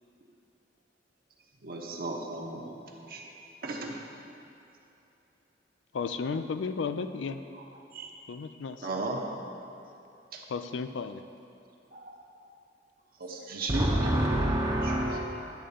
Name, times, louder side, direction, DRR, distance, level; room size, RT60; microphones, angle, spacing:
voice 1, 1.6-2.7 3.0-3.3 3.6-4.0 7.5-7.6 7.9-8.1 8.8-9.2 10.3-10.4 11.9-12.1 13.2-13.9 14.8-15.0, right 2 dB, 55° right, -1 dB, 1.0 m, -35 dB
voice 2, 5.9-7.4 8.3-8.9 10.5-11.2, left 5 dB, 90° left, 10 dB, 0.4 m, -33 dB
voice 3, 13.7-15.2, right 1 dB, 25° right, -3 dB, 0.7 m, -26 dB
10.0 x 3.7 x 6.9 m, 2.9 s
head